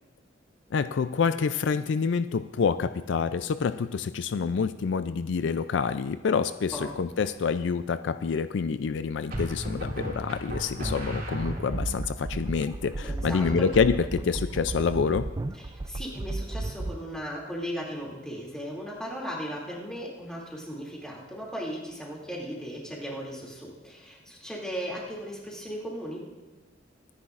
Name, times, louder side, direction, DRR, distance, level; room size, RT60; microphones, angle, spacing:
voice 1, 0.7-15.3, left 5 dB, 70° left, 12 dB, 0.4 m, -27 dB
sound 1, 6.6-7.1 9.3-12.0, equal, 55° right, 2.8 m, -34 dB
sound 2, 11.4-17.0, right 2 dB, 20° right, 0.3 m, -34 dB
voice 2, 13.0-13.7 15.5-26.3, equal, 5° left, -4 dB, 2.6 m, -37 dB
24.0 x 10.0 x 2.5 m, 1.2 s
head